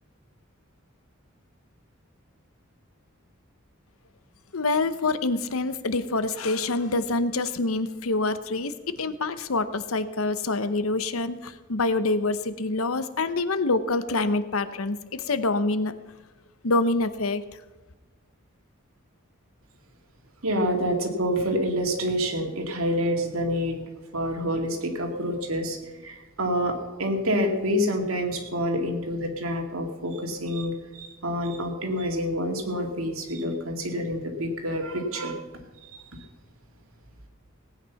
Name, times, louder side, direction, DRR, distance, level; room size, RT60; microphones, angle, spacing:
voice 1, 4.5-15.9 16.6-17.4, left 3 dB, 85° left, 12 dB, 0.9 m, -26 dB
voice 2, 20.4-23.8 24.1-35.4 35.8-36.3, equal, 90° right, 3 dB, 2.4 m, -27 dB
18.5 x 9.2 x 5.8 m, 1.2 s
head